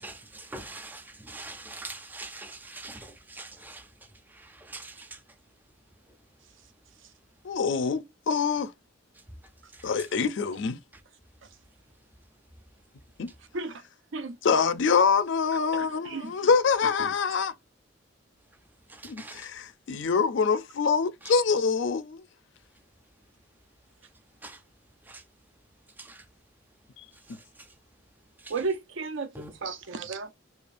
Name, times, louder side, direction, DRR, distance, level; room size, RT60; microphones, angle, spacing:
voice 1, 0.0-3.8 4.7-5.1 19.0-19.4 24.4-24.6 25.1-25.2 26.1-26.2 29.4-29.5, right 2 dB, 10° right, 0.4 m, -42 dB
voice 2, 7.4-8.7 9.8-10.8 13.2-13.3 14.4-17.5 19.0-22.2, left 5 dB, 65° left, 0.4 m, -25 dB
voice 3, 15.7-16.3 17.0-17.1 28.5-29.3 29.6-30.3, right 4 dB, 75° right, 0.6 m, -33 dB
4.9 x 2.3 x 2.5 m
head